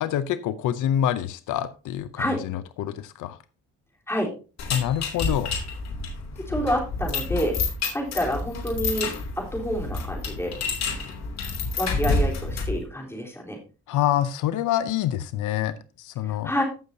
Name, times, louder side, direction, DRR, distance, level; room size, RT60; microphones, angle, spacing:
voice 1, 0.0-3.4 4.7-5.6 13.9-16.5, left 11 dB, 85° left, 13 dB, 0.7 m, -26 dB
sound 1, 4.6-12.8, left 3 dB, 60° left, 2.9 m, -29 dB
voice 2, 6.5-7.6 7.9-9.1 9.4-10.6 11.8-13.6 16.2-16.6, equal, 10° left, -1 dB, 3.8 m, -28 dB
15.0 x 6.5 x 2.8 m, 0.34 s
cardioid pair, 90°, 30 cm